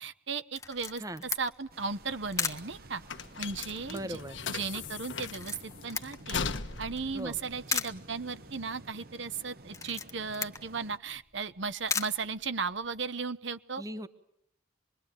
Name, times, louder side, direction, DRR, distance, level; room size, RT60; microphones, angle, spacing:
voice 1, 0.0-1.0 1.4-3.0 3.4-4.2 4.5-6.4 6.8-13.8, right 5 dB, 70° right, 11 dB, 1.1 m, -36 dB
Camera, 0.5-13.0, left 5 dB, 15° left, 1.1 m, -40 dB
sound 1, 1.7-11.0, right 2 dB, 50° right, 1.1 m, -52 dB
sound 2, 1.8-8.6, left 5 dB, 75° left, 1.2 m, -39 dB
voice 2, 3.9-4.4 7.1-7.4 13.8-14.1, equal, 20° right, 12 dB, 1.0 m, -38 dB
27.5 x 22.0 x 9.1 m, 0.74 s
head